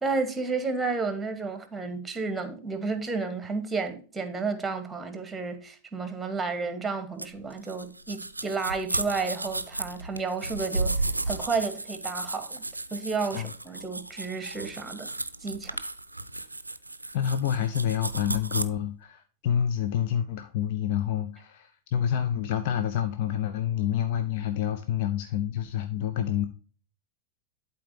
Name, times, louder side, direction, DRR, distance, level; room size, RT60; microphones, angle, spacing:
voice 1, 0.0-12.6 12.9-15.1 15.4-15.8, right 4 dB, 10° right, 1.4 m, -32 dB
sound 1, 7.2-18.6, right 2 dB, 85° right, 0.5 m, -33 dB
voice 2, 17.1-26.5, left 9 dB, 50° left, 0.6 m, -28 dB
11.5 x 4.2 x 2.8 m
figure-of-eight pair, 90°, 0 cm